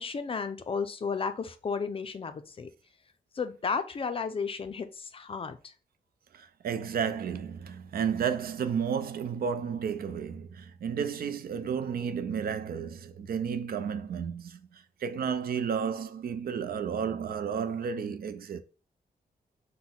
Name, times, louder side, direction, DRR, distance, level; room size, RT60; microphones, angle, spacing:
voice 1, 0.0-2.7 3.4-5.6, left 5 dB, 35° left, 0.4 m, -33 dB
voice 2, 6.3-18.6, right 7 dB, 70° right, 0.5 m, -32 dB
6.1 x 2.1 x 3.7 m
wide cardioid pair, 175°, 16 cm